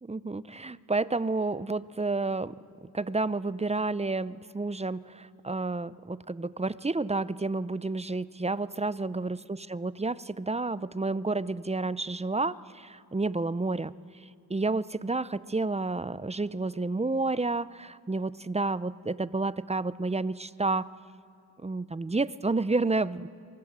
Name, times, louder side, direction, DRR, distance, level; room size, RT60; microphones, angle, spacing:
voice 1, 0.0-2.5 2.9-13.9 14.5-20.9 21.6-23.3, right 3 dB, 15° right, 17 dB, 0.6 m, -30 dB
27.0 x 24.0 x 7.5 m, 2.6 s
cardioid pair, 60°, 42 cm